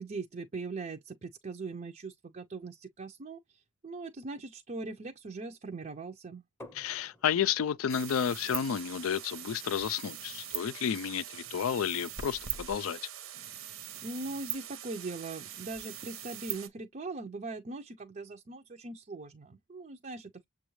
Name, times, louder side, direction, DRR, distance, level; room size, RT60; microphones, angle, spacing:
voice 1, 0.0-6.4 14.0-20.5, right 3 dB, 35° right, 0.5 m, -41 dB
sound 1, 6.6-12.2, left 1 dB, 10° left, 0.7 m, -58 dB
voice 2, 6.7-13.0, left 8 dB, 70° left, 0.4 m, -31 dB
sound 2, 7.9-16.7, right 10 dB, 65° right, 0.8 m, -42 dB
7.0 x 2.3 x 3.1 m
head